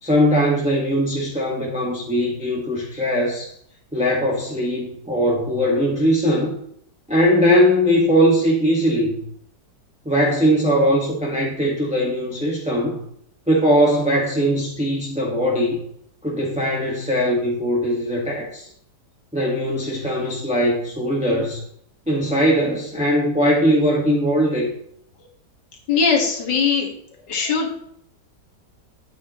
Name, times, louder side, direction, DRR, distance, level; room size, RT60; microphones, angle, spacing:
voice 1, 0.0-3.5 3.9-6.5 7.1-9.2 10.0-13.0 13.5-15.8 16.2-18.7 19.3-21.6 22.1-24.7, equal, 5° right, -3 dB, 1.4 m, -20 dB
voice 2, 25.9-26.9 27.3-27.7, left 5 dB, 75° left, 1 dB, 2.4 m, -20 dB
9.6 x 8.2 x 3.0 m, 0.68 s
omnidirectional pair, 1.9 m